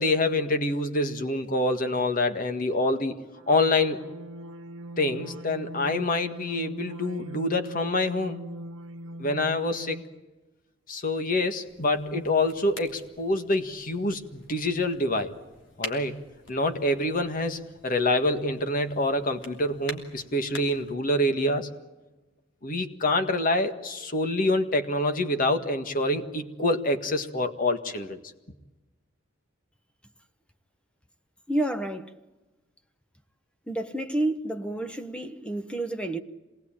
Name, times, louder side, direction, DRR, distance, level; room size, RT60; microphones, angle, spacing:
voice 1, 0.0-3.2 3.5-4.0 5.0-8.4 9.2-10.0 10.9-15.3 15.8-16.2 16.5-21.7 22.6-28.2, left 2 dB, 45° left, 1.8 m, -26 dB
sound 1, 3.4-10.2, right 1 dB, 80° right, 1.2 m, -41 dB
sound 2, 11.6-20.9, left 3 dB, 70° left, 3.2 m, -46 dB
voice 2, 31.5-32.1 33.7-36.2, right 1 dB, 5° left, 1.1 m, -29 dB
27.0 x 20.0 x 8.8 m
head